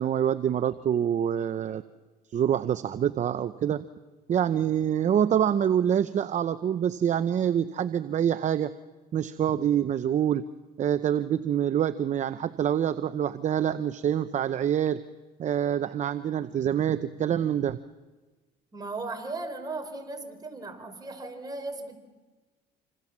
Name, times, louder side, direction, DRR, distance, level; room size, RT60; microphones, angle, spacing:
voice 1, 0.0-1.8 2.3-3.8 4.3-8.7 9.1-10.4 10.8-15.0 15.4-17.8, right 9 dB, 45° right, 12 dB, 0.8 m, -26 dB
voice 2, 18.7-22.0, right 3 dB, 25° right, 5 dB, 4.6 m, -37 dB
27.0 x 26.5 x 7.4 m, 1.3 s
cardioid pair, 110°, 17 cm